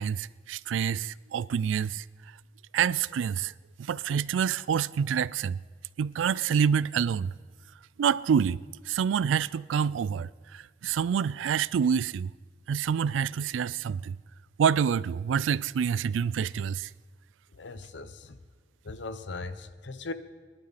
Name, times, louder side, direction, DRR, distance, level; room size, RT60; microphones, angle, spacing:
voice 1, 0.0-2.0 2.7-3.5 3.8-5.6 6.0-7.3 8.0-8.6 8.9-12.3 12.7-14.2 14.6-16.9, right 7 dB, 85° right, 0.3 m, -27 dB
voice 2, 17.5-18.4 18.8-20.1, left 3 dB, 75° left, 0.7 m, -39 dB
21.5 x 11.5 x 4.1 m
head